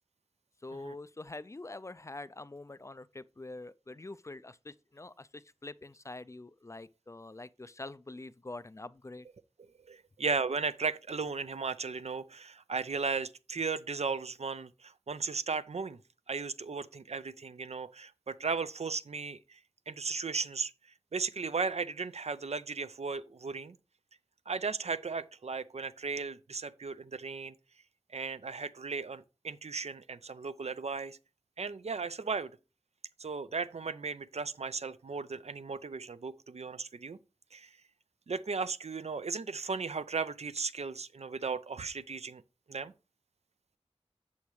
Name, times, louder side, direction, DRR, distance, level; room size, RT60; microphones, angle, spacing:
voice 1, 0.6-9.3, left 2 dB, 25° left, 0.3 m, -45 dB
voice 2, 9.9-16.0 16.3-19.6 19.9-20.7 21.1-23.8 24.5-27.5 28.1-31.2 31.6-32.5 33.2-37.2 37.5-37.7 38.3-42.4 42.7-42.9, right 4 dB, 75° right, 0.5 m, -36 dB
8.4 x 7.1 x 3.1 m
wide cardioid pair, 65°, 11 cm